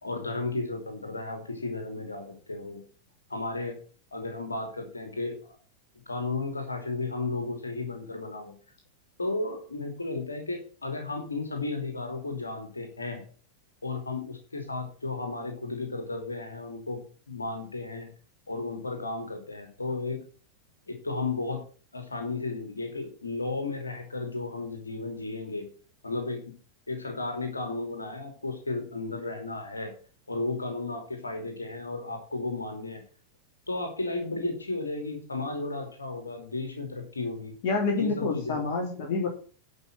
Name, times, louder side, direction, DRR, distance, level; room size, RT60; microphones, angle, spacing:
voice 1, 0.0-2.8 3.3-3.8 4.1-5.3 6.1-8.5 9.2-13.2 13.8-17.0 17.3-18.1 18.5-20.2 20.9-21.6 21.9-25.7 26.0-26.4 26.9-29.9 30.3-33.0 33.7-37.5 38.0-38.6, left 3 dB, 80° left, 4 dB, 2.7 m, -34 dB
voice 2, 37.6-39.3, left 4 dB, 50° left, 2 dB, 2.8 m, -27 dB
11.0 x 5.6 x 8.6 m, 0.40 s
figure-of-eight pair, 90°, 0 cm